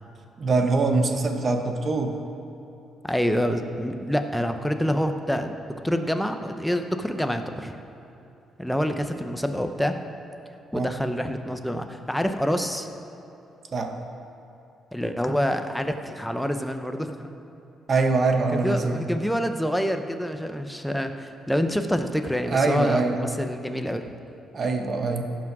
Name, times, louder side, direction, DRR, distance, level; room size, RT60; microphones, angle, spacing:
voice 1, 0.4-2.2 10.7-10.9 13.7-14.0 17.9-19.1 22.5-23.2 24.5-25.2, right 3 dB, 45° right, 5 dB, 1.2 m, -23 dB
voice 2, 3.0-5.5 5.8-7.8 8.6-10.0 10.7-12.9 14.9-17.3 18.5-24.1, equal, 5° left, 6 dB, 0.8 m, -27 dB
15.5 x 6.1 x 6.1 m, 2.8 s
cardioid pair, 90°, 0 cm